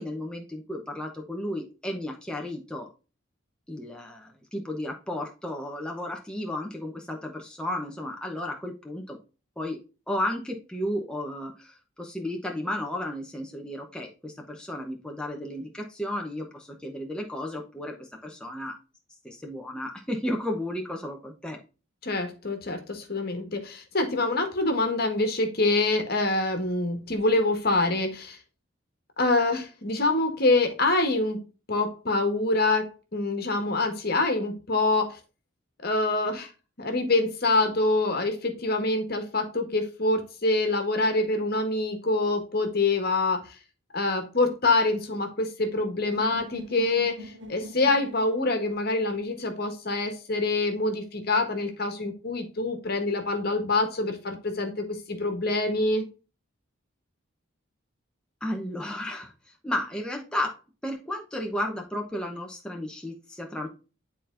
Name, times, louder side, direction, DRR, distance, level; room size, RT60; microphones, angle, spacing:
voice 1, 0.0-2.9 3.7-9.2 9.6-9.8 10.1-18.8 19.2-21.6 58.4-63.7, left 1 dB, 5° left, 1 dB, 0.9 m, -33 dB
voice 2, 22.0-28.4 29.2-31.4 31.7-35.2 35.8-36.5 36.8-43.4 43.9-56.0, left 2 dB, 50° left, 5 dB, 1.5 m, -25 dB
sound 1, 46.1-50.1, equal, 65° right, 1.8 m, -44 dB
9.9 x 4.3 x 2.5 m, 0.32 s
head